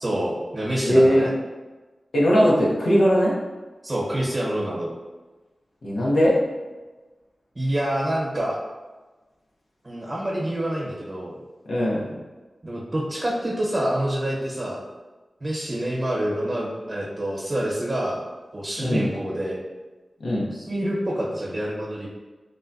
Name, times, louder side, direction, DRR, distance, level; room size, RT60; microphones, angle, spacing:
voice 1, 0.0-1.3 3.8-4.9 7.5-8.6 9.8-11.4 12.6-14.8 15.4-18.2 18.5-19.6 20.5-22.1, right 1 dB, 40° right, -4 dB, 0.9 m, -27 dB
voice 2, 0.9-1.3 2.1-3.3 5.8-6.3 11.7-12.0 18.8-19.1 20.2-20.5, equal, 80° left, -5 dB, 0.7 m, -19 dB
3.7 x 2.1 x 2.6 m, 1.2 s
cardioid pair, 55°, 0 cm